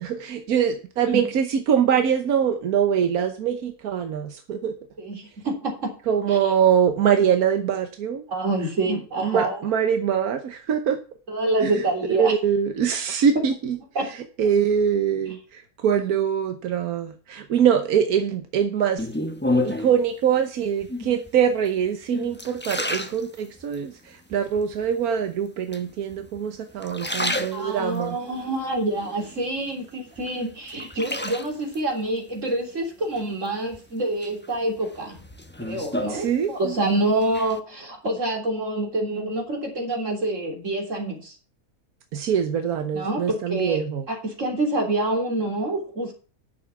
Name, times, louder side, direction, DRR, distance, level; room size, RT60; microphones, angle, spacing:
voice 1, 0.0-4.7 6.1-8.2 8.9-11.0 11.6-11.9 12.2-13.8 14.1-19.1 19.6-28.2 36.1-36.7 42.1-44.1, right 8 dB, 90° right, 7 dB, 1.4 m, -23 dB
voice 2, 5.0-5.9 6.3-6.5 8.3-9.7 11.3-12.3 14.0-14.1 15.3-15.4 27.5-35.2 35.6-41.4 42.9-43.8 44.1-46.1, right 2 dB, 55° right, 1 dB, 3.7 m, -27 dB
sound 1, 19.0-20.0 20.8-21.3 21.8-23.8 24.3-24.9 25.7-26.4 26.7-28.1 28.5-29.8 30.2-31.8 33.2-33.8 34.2-36.8 37.1-37.6, left 1 dB, 10° left, 0.9 m, -30 dB
10.5 x 7.0 x 5.9 m, 0.37 s
omnidirectional pair, 1.5 m